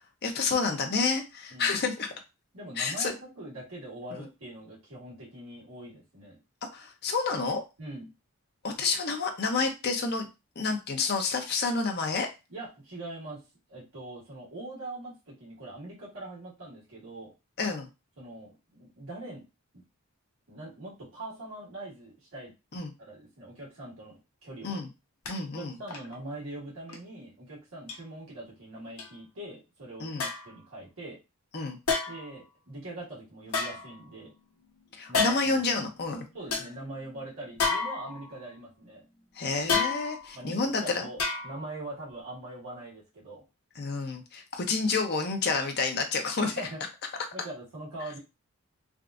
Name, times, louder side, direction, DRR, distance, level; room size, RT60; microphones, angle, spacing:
voice 1, 0.2-2.1 2.8-3.1 4.1-4.3 6.7-7.6 8.6-10.3 10.6-12.3 17.6-17.9 22.7-22.9 24.6-24.9 25.3-25.7 30.0-30.3 31.5-31.8 35.0-36.2 39.4-41.1 43.8-46.7, left 4 dB, 45° left, 4 dB, 0.6 m, -29 dB
voice 2, 2.5-3.1 3.4-6.4 7.8-8.1 12.5-13.4 13.7-17.3 18.2-19.4 20.5-22.5 23.0-24.8 25.6-30.1 30.4-31.2 32.1-34.3 35.1-35.8 36.3-39.0 40.3-43.4 46.4-46.9 47.3-48.2, right 2 dB, 70° right, -5 dB, 1.6 m, -42 dB
sound 1, 25.3-25.4 25.9-26.1 26.9-27.0 27.9-28.0 29.0-29.1 30.2-30.6 31.9-32.4 33.5-34.4 35.1-35.6 36.1-36.2 36.5-36.7 37.6-38.4 39.7-40.3 41.2-41.8 42.1-42.2, left 4 dB, 75° left, 1.0 m, -30 dB
3.5 x 2.4 x 2.4 m, 0.26 s
head